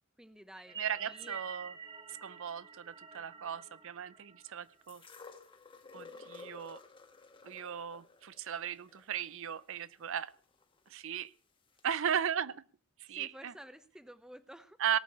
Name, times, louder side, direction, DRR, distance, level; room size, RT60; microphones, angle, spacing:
voice 1, 0.2-1.4 10.1-10.2 13.1-14.8, equal, 5° right, 11 dB, 0.8 m, -52 dB
sound 1, 0.6-5.1, right 6 dB, 25° right, 1.1 m, -48 dB
voice 2, 0.8-1.7 2.2-5.0 5.9-6.8 7.4-10.3 10.9-11.3 11.8-12.6 13.1-13.5 14.8-15.0, right 8 dB, 65° right, 18 dB, 0.6 m, -36 dB
sound 2, 4.9-10.9 11.8-11.9, left 4 dB, 25° left, 1.3 m, -54 dB
18.5 x 6.6 x 8.3 m, 0.43 s
head